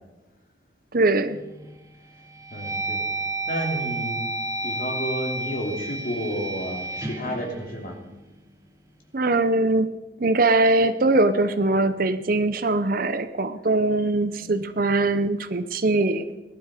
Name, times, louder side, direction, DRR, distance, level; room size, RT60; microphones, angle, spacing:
voice 1, 0.9-1.4 9.1-9.9 10.2-16.4, right 2 dB, 50° right, 12 dB, 0.7 m, -22 dB
sound 1, 1.3-1.7 2.2-8.4, right 2 dB, 15° right, 1.1 m, -31 dB
voice 2, 2.5-3.1 3.5-4.2 4.6-8.0 14.3-15.0, equal, 45° left, 0 dB, 3.1 m, -31 dB
18.0 x 12.0 x 5.0 m, 1.1 s
head